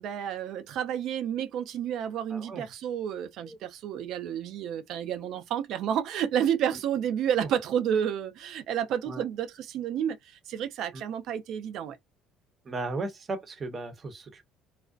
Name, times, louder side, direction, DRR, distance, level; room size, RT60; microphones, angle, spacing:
voice 1, 0.0-12.0, right 9 dB, 65° right, 0.6 m, -30 dB
voice 2, 2.3-2.6 3.4-3.6 7.4-7.5 9.1-9.2 10.9-11.0 12.6-14.5, right 3 dB, 40° right, 0.9 m, -36 dB
2.5 x 2.1 x 2.4 m
hypercardioid pair, 70°, 0 cm